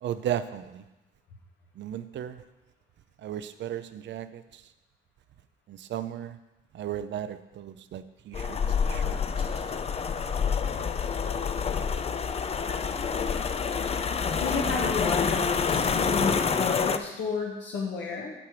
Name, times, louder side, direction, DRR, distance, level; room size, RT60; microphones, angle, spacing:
voice 1, 0.0-0.8 1.8-2.4 3.2-4.6 5.7-6.4 6.7-9.5, right 10 dB, 65° right, 12 dB, 0.5 m, -35 dB
sound 1, 8.3-17.0, left 6 dB, 30° left, 0.5 m, -27 dB
voice 2, 14.3-18.3, left 4 dB, 70° left, -3 dB, 1.3 m, -32 dB
8.7 x 4.9 x 6.1 m, 1.0 s
cardioid pair, 90°, 20 cm